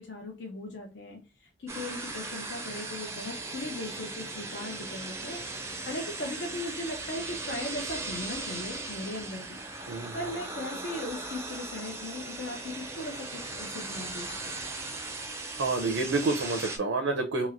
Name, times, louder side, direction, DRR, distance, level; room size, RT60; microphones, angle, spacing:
voice 1, 0.0-5.4 5.9-9.6 10.1-14.5, left 1 dB, 65° left, 1 dB, 0.6 m, -38 dB
sound 1, 1.7-16.8, right 3 dB, 15° right, 0.4 m, -38 dB
voice 2, 15.6-17.5, right 3 dB, 85° right, 4 dB, 0.6 m, -28 dB
3.0 x 2.8 x 2.5 m, 0.28 s
head